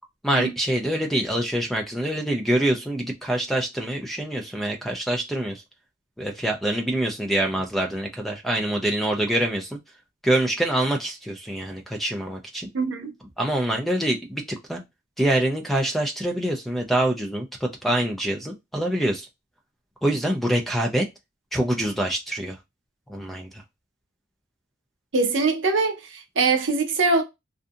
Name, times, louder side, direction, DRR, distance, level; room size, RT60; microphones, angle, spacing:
voice 1, 0.2-5.6 6.2-9.8 10.2-12.7 13.4-14.8 15.2-19.3 20.0-21.1 21.5-22.6 23.1-23.6, right 1 dB, ahead, 0.3 m, -25 dB
voice 2, 12.7-13.1 25.1-27.2, right 3 dB, 80° right, 0.7 m, -22 dB
2.6 x 2.5 x 2.3 m
head